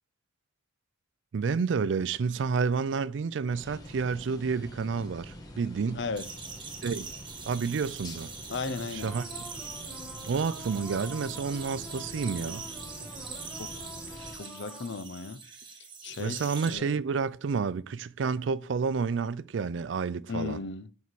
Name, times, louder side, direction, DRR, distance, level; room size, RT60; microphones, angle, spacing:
voice 1, 1.3-6.0 6.8-7.1 7.5-8.3 8.9-9.3 10.2-12.7 16.2-20.6, right 5 dB, 75° right, 0.4 m, -30 dB
sound 1, 3.5-14.3, left 1 dB, 20° left, 1.2 m, -46 dB
voice 2, 5.9-6.3 8.5-9.1 13.6-15.4 16.0-16.9 20.3-20.9, left 4 dB, 65° left, 0.6 m, -36 dB
sound 2, 6.2-16.7, right 5 dB, 25° right, 1.3 m, -43 dB
sound 3, 9.0-15.0, left 1 dB, ahead, 2.2 m, -47 dB
8.2 x 4.6 x 4.7 m
head